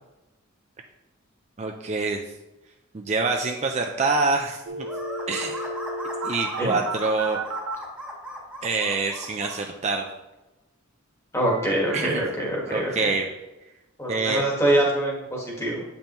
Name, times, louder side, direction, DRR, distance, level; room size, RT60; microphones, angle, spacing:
voice 1, 1.6-2.2 2.9-4.9 5.3-5.7 6.2-7.4 8.6-10.1 11.9-12.2 12.7-13.3 14.1-14.4, right 3 dB, 30° right, 3 dB, 0.4 m, -26 dB
sound 1, 4.6-7.8 11.5-12.3, right 2 dB, 80° right, 0.6 m, -32 dB
sound 2, 4.8-9.6, equal, 5° right, 1.3 m, -37 dB
voice 2, 11.3-12.9 14.0-15.8, right 1 dB, 15° left, -2 dB, 1.4 m, -24 dB
8.5 x 5.4 x 3.0 m, 1.0 s
head